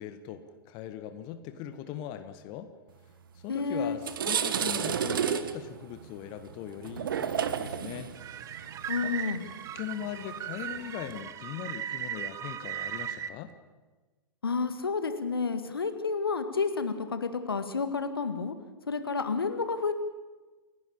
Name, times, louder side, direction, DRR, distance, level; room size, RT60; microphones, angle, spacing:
voice 1, 0.0-2.7 3.4-8.1 8.9-9.2 9.7-13.5, left 10 dB, 40° left, 10 dB, 1.6 m, -40 dB
sound 1, 3.4-3.5 3.9-11.2, right 8 dB, 65° right, 1.4 m, -32 dB
voice 2, 3.5-4.0 8.9-9.4 14.4-18.5 18.9-19.9, left 4 dB, 80° left, 9 dB, 1.9 m, -30 dB
sound 2, 8.1-13.3, right 9 dB, 25° right, 1.0 m, -37 dB
29.0 x 11.5 x 8.8 m, 1.2 s
figure-of-eight pair, 100°, 12 cm